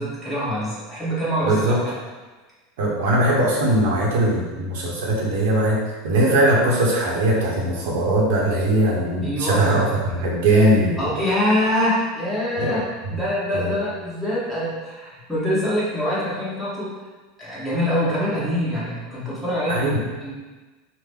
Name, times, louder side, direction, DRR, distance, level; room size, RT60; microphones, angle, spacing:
voice 1, 0.0-2.0 9.2-10.0 11.0-12.8 13.1-16.9 17.4-19.8 20.2-20.3, equal, 5° left, -10 dB, 1.3 m, -24 dB
voice 2, 2.8-9.9 10.1-11.0 12.6-12.7 13.5-13.7 19.7-20.0, right 1 dB, 75° right, -4 dB, 0.8 m, -20 dB
3.7 x 2.1 x 3.4 m, 1.3 s
supercardioid pair, 130°, 0 cm